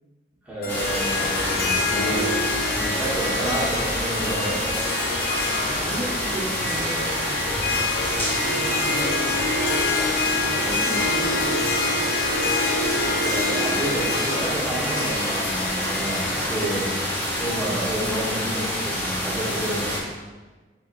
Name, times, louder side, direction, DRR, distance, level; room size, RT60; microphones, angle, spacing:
voice 1, 0.4-2.3 2.7-4.6 13.0-17.1 17.4-19.8, right 1 dB, 10° right, -8 dB, 1.3 m, -30 dB
Harp, 0.6-17.9, left 2 dB, 55° left, 0.6 m, -27 dB
sound 1, 0.7-20.0, equal, 10° left, 0.8 m, -27 dB
voice 2, 5.6-7.3 8.4-9.2 9.6-9.7 10.3-11.6, right 1 dB, 55° right, -5 dB, 1.0 m, -34 dB
4.5 x 4.2 x 2.6 m, 1.3 s
head